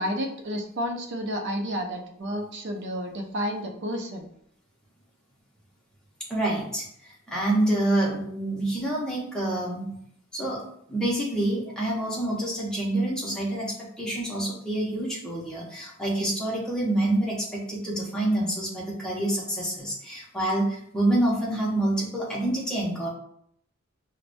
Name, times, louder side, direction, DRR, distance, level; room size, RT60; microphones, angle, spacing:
voice 1, 0.0-4.3, equal, 50° right, 3 dB, 0.5 m, -31 dB
voice 2, 6.3-9.9 10.3-10.6 10.9-23.1, right 1 dB, 5° left, -5 dB, 0.7 m, -27 dB
4.7 x 2.1 x 2.5 m, 0.70 s
head